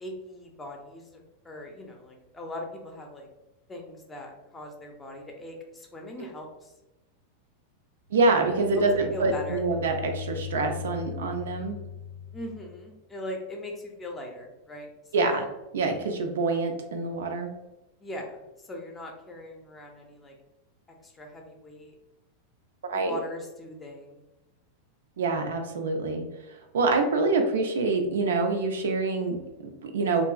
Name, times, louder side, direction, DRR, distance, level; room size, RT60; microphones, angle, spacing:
voice 1, 0.0-3.3 3.7-6.7 8.7-8.8 9.1-9.6 12.3-14.9 15.2-15.5 18.0-20.4 21.0-21.9 22.9-24.2, left 1 dB, 15° left, 1 dB, 0.5 m, -40 dB
sound 1, 8.1-12.9, left 8 dB, 70° left, 0.4 m, -39 dB
voice 2, 8.1-11.8 15.1-15.5 15.7-17.5 22.9-23.2 25.2-26.3 26.7-30.2, right 3 dB, 60° right, 4 dB, 0.3 m, -26 dB
2.9 x 2.5 x 2.3 m, 1.0 s
figure-of-eight pair, 90°, 0 cm